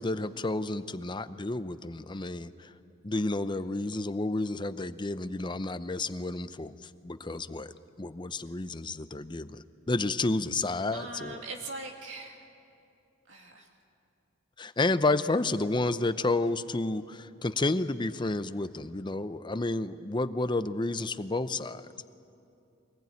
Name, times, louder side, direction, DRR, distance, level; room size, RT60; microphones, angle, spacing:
voice 1, 0.0-2.7 3.0-11.4 14.6-21.9, left 2 dB, 25° left, 13 dB, 0.7 m, -31 dB
voice 2, 10.9-12.4 13.2-13.7, right 2 dB, 80° right, 1 dB, 2.9 m, -41 dB
24.0 x 19.5 x 9.5 m, 2.7 s
head